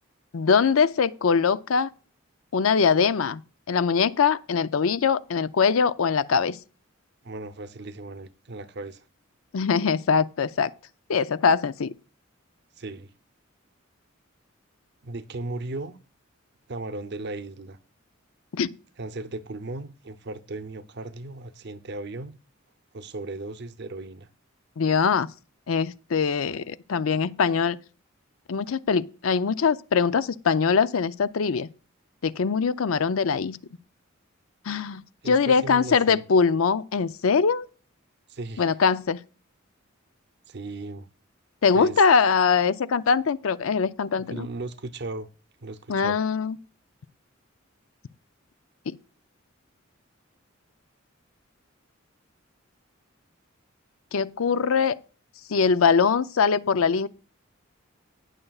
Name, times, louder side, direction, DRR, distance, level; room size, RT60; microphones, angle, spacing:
voice 1, 0.3-1.9 2.5-3.4 3.7-6.6 9.5-10.7 11.1-11.9 18.5-18.7 24.8-25.3 25.7-27.8 28.5-31.7 32.2-33.6 34.7-37.7 38.6-39.2 41.6-44.5 45.9-46.6 48.9-49.0 54.1-55.0 55.5-57.1, left 5 dB, 85° left, 0.5 m, -22 dB
voice 2, 7.2-9.0 12.8-13.1 15.0-16.0 16.7-17.8 19.0-22.4 22.9-24.3 35.2-36.2 38.3-38.7 40.5-41.1 41.7-42.0 44.3-45.3 45.6-46.2, right 2 dB, 55° right, 0.7 m, -36 dB
18.5 x 6.6 x 2.4 m
head